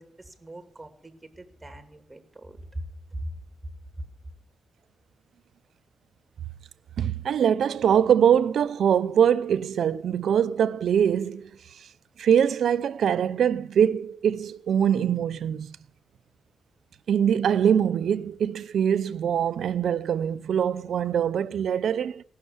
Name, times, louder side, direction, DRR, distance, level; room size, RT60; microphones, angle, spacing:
voice 1, 0.0-3.4, right 1 dB, 15° right, 2.4 m, -40 dB
voice 2, 7.0-11.5 12.2-15.8 17.1-22.2, right 8 dB, 75° right, 0.5 m, -23 dB
17.0 x 6.5 x 9.3 m
cardioid pair, 75°, 0 cm